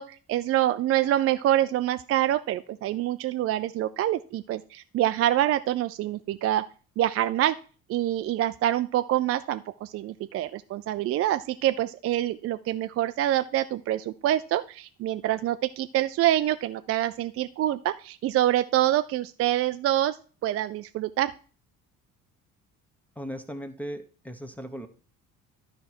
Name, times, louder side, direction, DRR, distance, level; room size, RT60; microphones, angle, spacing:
voice 1, 0.0-6.6 7.0-7.6 7.9-20.2 20.4-21.3, right 13 dB, 35° right, 11 dB, 0.4 m, -26 dB
voice 2, 23.1-24.9, equal, 5° left, 8 dB, 1.0 m, -37 dB
12.0 x 4.7 x 4.4 m, 0.39 s
hypercardioid pair, 55°, 41 cm